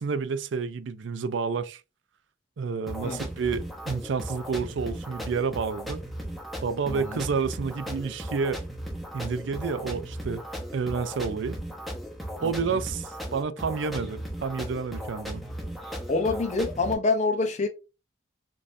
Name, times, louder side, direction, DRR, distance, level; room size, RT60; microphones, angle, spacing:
voice 1, 0.0-1.8 2.6-6.0 6.6-8.6 9.1-10.4 10.7-11.6 12.4-15.4, right 5 dB, 75° right, 0.4 m, -30 dB
sound 1, 2.9-16.9, equal, ahead, 0.8 m, -37 dB
voice 2, 6.9-7.2 12.4-12.8 16.1-17.7, left 3 dB, 40° left, 0.6 m, -27 dB
5.2 x 2.6 x 2.6 m
head